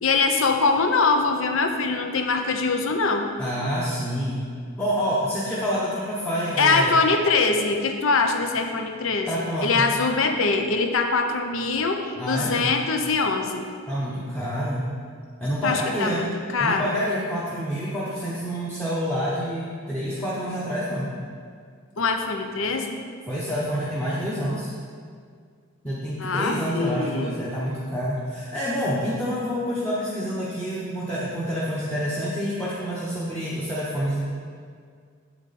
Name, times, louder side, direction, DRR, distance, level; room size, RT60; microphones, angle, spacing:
voice 1, 0.0-3.3 6.6-12.0 12.2-13.7 15.6-17.0 22.0-23.0 26.2-27.3, left 4 dB, 60° left, 5 dB, 0.6 m, -23 dB
voice 2, 3.4-4.4 4.7-7.0 9.3-9.9 12.2-12.7 13.9-14.9 15.4-16.3 16.6-21.1 23.3-24.7 25.8-34.2, equal, 5° left, -9 dB, 0.9 m, -27 dB
8.6 x 7.1 x 4.1 m, 2.1 s
head